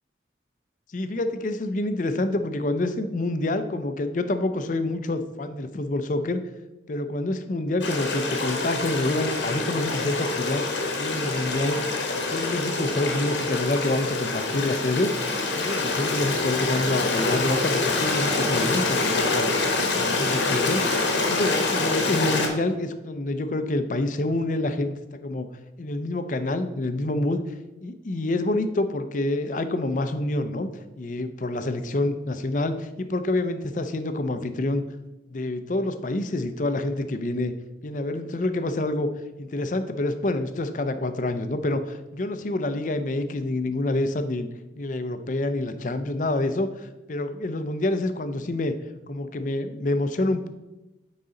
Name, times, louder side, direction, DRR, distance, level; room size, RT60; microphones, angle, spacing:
voice 1, 0.9-6.4 6.9-10.6 11.0-11.8 12.1-15.1 15.6-19.5 19.9-20.8 21.3-25.5 25.8-27.4 27.8-30.7 31.0-34.8 35.3-37.5 37.8-39.1 39.4-44.5 44.8-48.7 49.1-50.5, left 2 dB, 45° left, 10 dB, 0.5 m, -27 dB
Stream, 7.8-22.5, left 3 dB, 80° left, 1.2 m, -26 dB
9.5 x 4.0 x 3.8 m, 1.0 s
head